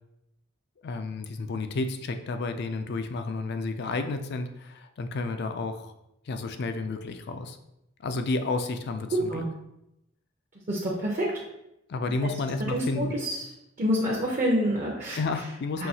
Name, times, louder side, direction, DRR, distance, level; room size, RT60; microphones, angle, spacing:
voice 1, 0.8-5.9 6.3-7.6 8.0-9.4 11.9-13.1 15.1-15.9, left 3 dB, 55° left, 8 dB, 0.4 m, -31 dB
voice 2, 9.1-9.5 10.7-11.3 12.7-13.4 13.8-15.2 15.8-15.9, equal, 40° right, -2 dB, 0.6 m, -27 dB
5.6 x 2.7 x 2.7 m, 0.84 s
head